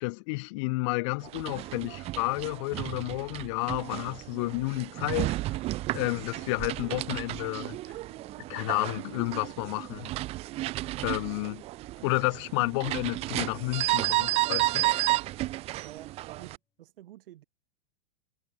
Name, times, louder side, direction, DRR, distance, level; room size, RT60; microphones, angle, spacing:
voice 1, 0.0-5.4 5.9-7.8 8.5-10.1 11.0-11.6 12.0-14.8, left 28 dB, 30° left, 0.5 m, -31 dB
sound 1, 1.2-16.6, right 17 dB, 20° right, 0.6 m, -32 dB
sound 2, 5.9-13.2 13.7-14.1 15.0-15.1 15.3-15.4 15.6-15.7, left 5 dB, 10° left, 2.4 m, -61 dB
voice 2, 15.8-17.4, right 14 dB, 65° right, 2.0 m, -50 dB
supercardioid pair, 160°, 30 cm